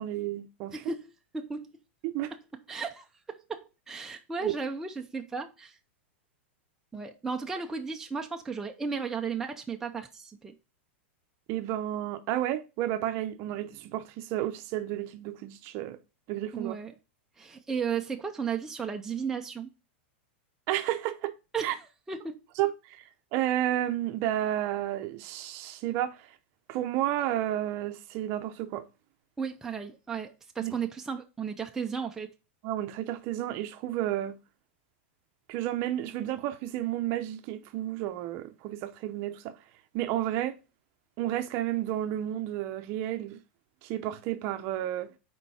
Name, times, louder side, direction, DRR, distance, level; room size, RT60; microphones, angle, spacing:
voice 1, 0.0-0.7 2.0-2.3 4.4-4.5 11.5-16.0 16.3-16.7 20.7-21.3 21.6-21.7 22.6-23.0 23.3-26.3 26.7-28.9 30.6-30.8 32.6-34.4 35.5-39.6 39.9-40.6 41.2-43.4 43.8-45.1, right 13 dB, 40° right, 0.7 m, -31 dB
voice 2, 0.7-1.7 2.7-3.1 3.5-5.8 6.9-10.5 16.5-16.9 17.4-19.7 21.5-21.8 22.1-22.4 29.4-32.3, right 5 dB, 5° right, 0.6 m, -34 dB
6.6 x 4.5 x 4.8 m
supercardioid pair, 150°, 7 cm